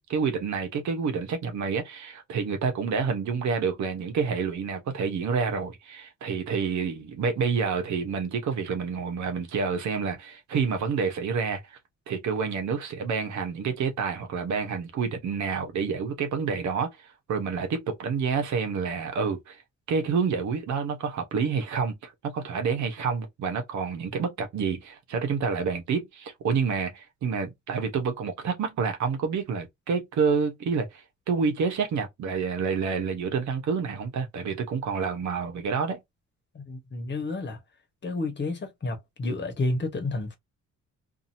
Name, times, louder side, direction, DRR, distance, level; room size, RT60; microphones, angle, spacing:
voice 1, 0.1-11.8 12.1-19.6 19.9-36.0, right 5 dB, 70° right, 1.1 m, -28 dB
voice 2, 36.5-37.6 38.0-40.4, left 2 dB, 35° left, 1.2 m, -30 dB
2.7 x 2.7 x 2.7 m
cardioid pair, 90°, 30 cm